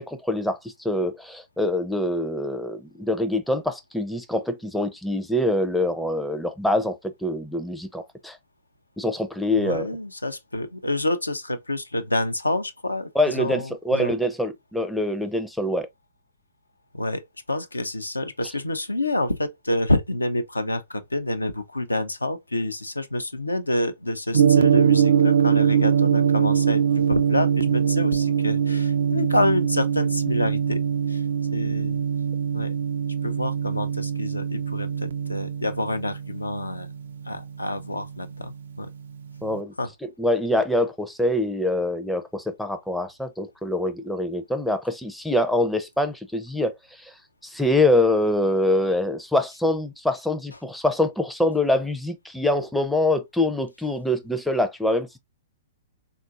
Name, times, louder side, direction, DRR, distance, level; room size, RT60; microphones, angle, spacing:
voice 1, 0.0-8.4 9.0-9.9 13.2-15.9 39.4-39.7 40.0-47.1 47.4-55.2, left 1 dB, ahead, 0.4 m, -24 dB
voice 2, 9.5-14.1 16.9-26.8 27.1-30.8 31.1-31.2 31.5-32.0 32.5-32.8 33.2-36.9 37.3-38.9 39.8-39.9, left 1 dB, 85° left, 0.4 m, -27 dB
Gong, 24.3-38.5, right 7 dB, 65° right, 0.3 m, -22 dB
3.8 x 2.4 x 2.4 m
figure-of-eight pair, 110°, 0 cm